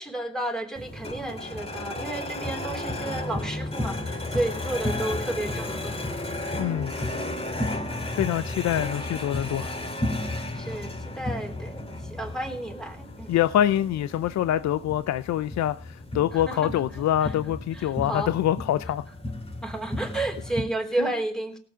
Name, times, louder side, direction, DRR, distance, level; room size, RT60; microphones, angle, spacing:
voice 1, 0.0-6.1 10.5-10.9 11.2-13.4 16.3-16.6 17.2-17.3 17.7-18.3 19.6-21.6, right 2 dB, ahead, 3.4 m, -32 dB
sound 1, 0.8-20.6, left 1 dB, 20° left, 2.7 m, -33 dB
voice 2, 6.6-7.1 8.1-9.8 13.3-19.0 21.0-21.1, left 11 dB, 65° left, 0.6 m, -25 dB
17.5 x 7.8 x 5.1 m
cardioid pair, 90°, 30 cm